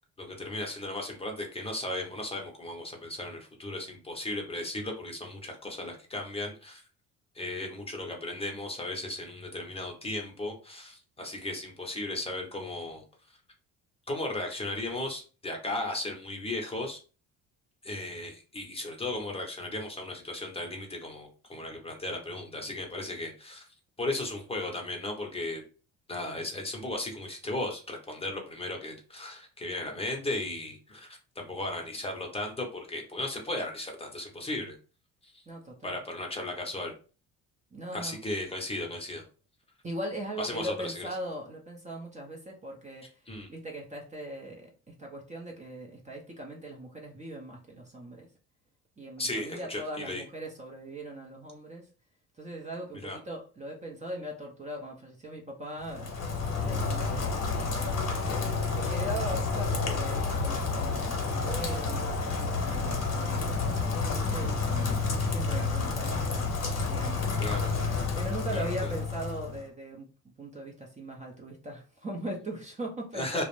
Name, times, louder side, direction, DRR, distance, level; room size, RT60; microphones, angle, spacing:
voice 1, 0.2-6.8 7.3-13.0 14.1-17.0 17.8-23.7 24.0-25.6 26.1-34.8 35.2-35.4 35.8-36.9 37.9-39.2 40.4-41.1 43.3-43.5 49.2-50.2 53.0-53.2 67.4-67.7 68.5-68.9 73.1-73.4, left 2 dB, 15° left, 2 dB, 0.7 m, -36 dB
voice 2, 35.5-36.0 37.7-38.2 39.8-43.0 43.5-48.3 49.0-51.9 52.4-56.3 56.6-58.1 58.7-66.5 66.9-67.4 68.2-70.1 70.4-73.4, right 1 dB, 20° right, -1 dB, 0.5 m, -40 dB
Rain, 55.8-69.6, left 4 dB, 50° left, 0.9 m, -30 dB
2.4 x 2.0 x 3.0 m, 0.36 s
cardioid pair, 95°, 34 cm